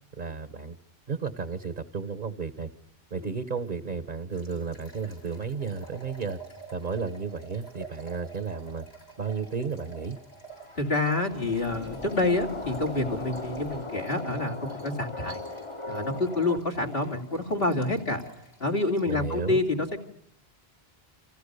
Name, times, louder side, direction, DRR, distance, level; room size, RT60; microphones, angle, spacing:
voice 1, 0.2-0.8 1.1-2.7 3.1-6.4 6.7-8.8 9.2-10.2 19.1-19.6, right 5 dB, 50° right, 12 dB, 1.5 m, -33 dB
sound 1, 4.3-19.2, right 5 dB, 85° left, 7.3 m, -49 dB
sound 2, 10.5-16.6, left 2 dB, 30° left, 1.5 m, -38 dB
voice 2, 10.8-15.4 15.9-18.2 18.6-20.0, left 2 dB, 65° left, 8 dB, 3.3 m, -28 dB
30.0 x 27.5 x 6.9 m, 0.69 s
omnidirectional pair, 1.0 m